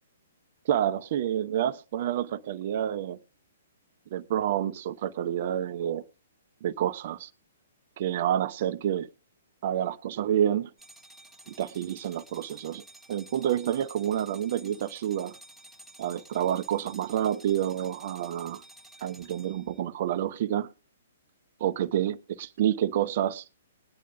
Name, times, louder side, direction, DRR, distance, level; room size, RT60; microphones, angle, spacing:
voice 1, 0.6-3.2 4.1-6.0 6.6-7.3 8.0-9.1 9.6-10.7 11.5-12.8 13.1-15.4 16.0-18.6 19.0-20.7 21.6-23.4, right 10 dB, 50° right, 0.7 m, -28 dB
sound 1, 10.8-19.8, right 1 dB, ahead, 1.5 m, -52 dB
20.5 x 10.0 x 2.5 m
figure-of-eight pair, 120°, 0 cm